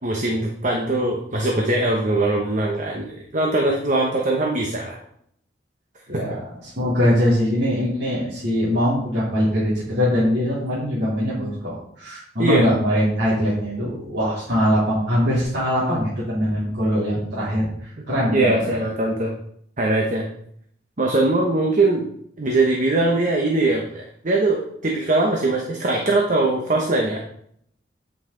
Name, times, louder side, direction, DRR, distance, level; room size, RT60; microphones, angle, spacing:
voice 1, 0.0-5.0 6.1-6.2 12.4-12.6 18.3-19.3 19.8-20.3 21.0-22.1 22.4-27.2, right 2 dB, 45° right, 0 dB, 1.0 m, -21 dB
voice 2, 6.1-18.8, equal, 60° right, -10 dB, 3.3 m, -22 dB
9.3 x 5.6 x 3.9 m, 0.68 s
head